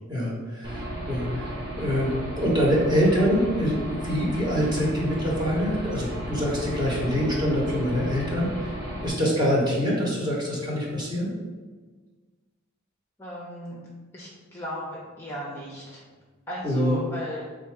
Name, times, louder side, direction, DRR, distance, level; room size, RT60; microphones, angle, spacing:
voice 1, 0.1-8.7 9.0-11.3 16.6-17.0, equal, 20° right, -5 dB, 1.1 m, -25 dB
Aircraft / Engine, 0.6-9.1, equal, 55° right, 1.3 m, -34 dB
voice 2, 13.2-13.8 14.1-16.0 16.5-17.4, left 1 dB, 10° left, -5 dB, 0.7 m, -35 dB
3.6 x 2.6 x 4.6 m, 1.4 s
head